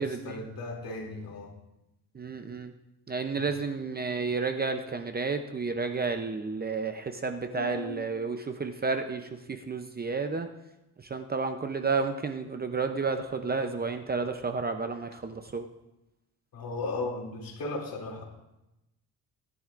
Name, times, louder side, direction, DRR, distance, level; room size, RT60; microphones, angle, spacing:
voice 1, 0.0-1.5 3.4-3.5 7.5-8.0 16.5-18.2, left 2 dB, 60° left, 0 dB, 2.8 m, -36 dB
voice 2, 2.1-2.7 3.1-10.5 11.1-15.6, right 4 dB, 25° right, 7 dB, 0.6 m, -31 dB
18.0 x 11.0 x 2.5 m, 0.94 s
cardioid pair, 120°, 39 cm